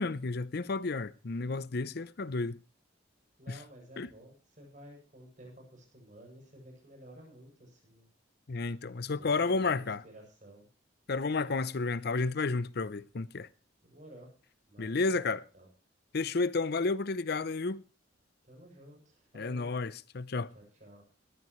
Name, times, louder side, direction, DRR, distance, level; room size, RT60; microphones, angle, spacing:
voice 1, 0.0-2.6 3.5-3.6 4.0-4.1 8.5-10.0 11.1-13.5 14.8-15.4 16.1-17.8 19.3-20.5, left 3 dB, 55° left, 0.6 m, -31 dB
voice 2, 3.4-8.1 9.2-10.7 13.8-14.3 14.7-15.7 18.4-19.7 20.5-21.0, right 1 dB, 40° right, 7.9 m, -53 dB
20.5 x 15.0 x 3.1 m
head